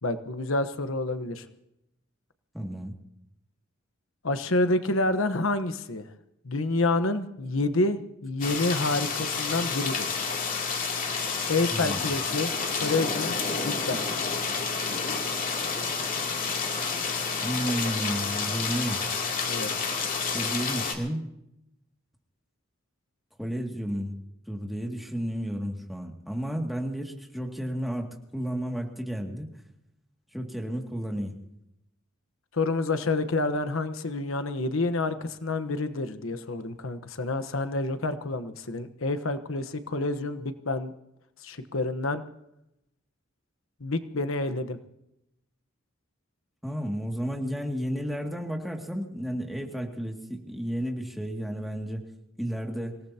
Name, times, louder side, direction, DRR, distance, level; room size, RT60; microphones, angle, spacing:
voice 1, 0.0-1.4 4.2-6.1 6.4-10.1 11.5-13.3 13.6-14.0 19.5-19.9 32.5-40.9 41.4-42.2 43.8-44.8, left 2 dB, 85° left, 10 dB, 1.2 m, -28 dB
voice 2, 2.5-2.9 11.7-12.1 17.4-19.0 20.3-21.2 23.4-24.2 24.5-29.5 30.3-31.3 46.6-52.0 52.4-53.0, equal, ahead, 1 dB, 2.3 m, -32 dB
sound 1, 8.4-20.9, left 5 dB, 45° left, 2.8 m, -29 dB
26.5 x 18.0 x 2.9 m, 0.82 s
head